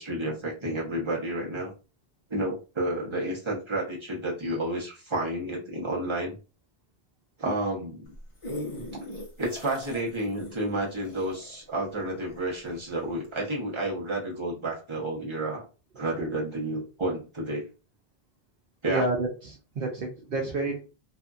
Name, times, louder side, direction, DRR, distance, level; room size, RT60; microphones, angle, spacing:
voice 1, 0.0-1.7 2.3-6.4 7.4-8.1 9.4-15.6 15.9-17.7 18.8-19.0, right 1 dB, 30° right, -3 dB, 1.0 m, -31 dB
sound 1, 8.1-12.7 13.2-13.3, left 1 dB, 35° left, 0.7 m, -40 dB
voice 2, 18.9-20.9, right 2 dB, 60° right, -1 dB, 0.8 m, -30 dB
2.7 x 2.6 x 2.3 m, 0.32 s
omnidirectional pair, 1.1 m